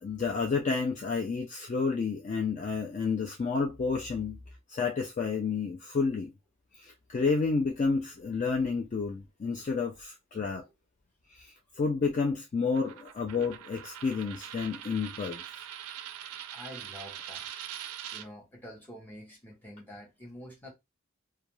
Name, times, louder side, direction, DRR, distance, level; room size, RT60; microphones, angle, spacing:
voice 1, 0.0-4.4 4.7-6.3 6.8-10.6 11.3-11.5 11.8-15.4, left 4 dB, 35° left, 0.3 m, -30 dB
Coin (dropping), 12.7-18.3, right 10 dB, 80° right, 0.3 m, -43 dB
voice 2, 16.5-17.5 18.1-20.7, equal, 10° left, 0.7 m, -47 dB
2.3 x 2.2 x 3.0 m
head